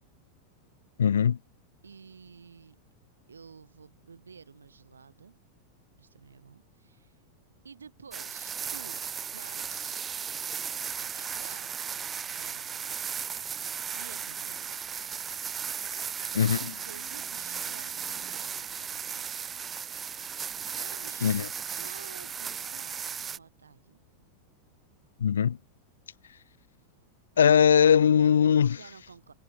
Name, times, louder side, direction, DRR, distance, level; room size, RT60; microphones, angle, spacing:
voice 1, 1.0-1.4 16.3-16.6 21.2-21.5 25.2-25.6 27.4-28.8, left 8 dB, 65° left, 0.5 m, -20 dB
voice 2, 1.8-2.8 3.3-5.3 6.0-7.2 7.6-9.0 9.3-10.2 10.9-12.9 13.9-14.7 16.5-19.3 20.6-21.4 21.8-24.0 28.7-29.3, right 5 dB, 75° right, 6.5 m, -51 dB
sound 1, 8.1-23.4, right 7 dB, 20° right, 1.6 m, -36 dB
figure-of-eight pair, 90°, 0 cm